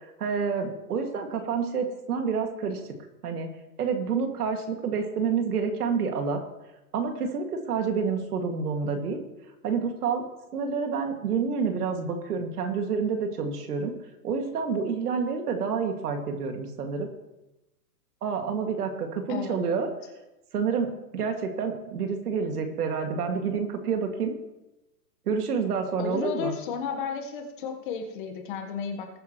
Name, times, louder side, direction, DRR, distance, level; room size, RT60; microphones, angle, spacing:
voice 1, 0.2-2.8 3.2-3.5 3.8-6.4 6.9-9.2 9.6-10.2 10.5-13.9 14.2-17.1 18.2-19.9 20.5-24.3 25.3-26.5, right 5 dB, 65° right, 4 dB, 2.3 m, -28 dB
voice 2, 19.3-19.6 26.0-29.1, left 7 dB, 30° left, 5 dB, 1.3 m, -33 dB
20.5 x 9.2 x 3.1 m, 0.97 s
hypercardioid pair, 165°, 49 cm